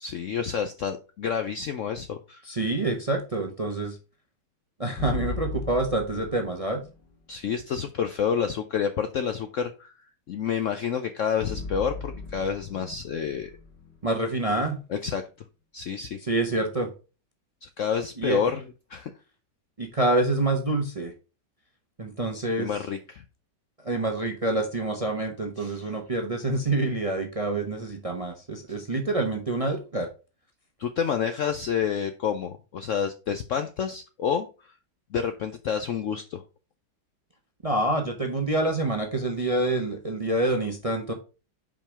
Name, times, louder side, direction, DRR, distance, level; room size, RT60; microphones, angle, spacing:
voice 1, 0.0-2.4 7.3-9.9 10.3-13.5 14.9-15.2 15.7-16.2 17.6-19.1 22.6-23.2 25.6-25.9 28.7-28.8 30.8-34.7 35.1-36.4, left 7 dB, 65° left, 7 dB, 0.8 m, -29 dB
voice 2, 2.5-4.0 4.8-6.8 14.0-14.8 16.2-16.9 18.2-18.4 19.8-21.1 22.0-22.7 23.8-30.1 37.6-41.1, right 2 dB, 30° right, 4 dB, 0.7 m, -27 dB
sound 1, 5.0-7.2 11.4-14.6, left 5 dB, 80° left, 2.5 m, -37 dB
5.5 x 5.2 x 4.8 m, 0.32 s
omnidirectional pair, 1.9 m